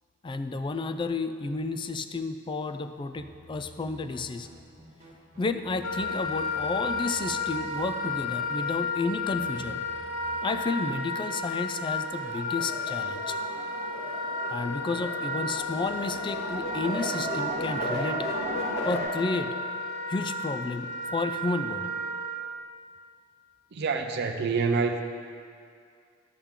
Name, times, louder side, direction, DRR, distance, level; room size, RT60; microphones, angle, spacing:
voice 1, 0.2-4.5 5.4-9.9 10.4-13.4 14.5-18.3 18.8-19.6 20.1-21.9, left 3 dB, 25° left, 9 dB, 0.3 m, -31 dB
sound 1, 3.2-10.5, equal, 35° right, 1.5 m, -51 dB
Wind instrument woodwind instrument, 5.8-22.4, left 2 dB, 75° left, 0.8 m, -33 dB
sound 2, 12.1-19.0, equal, 60° left, 2.2 m, -35 dB
voice 2, 23.7-25.0, right 4 dB, 55° right, 4 dB, 0.5 m, -27 dB
11.0 x 3.6 x 7.2 m, 2.3 s
head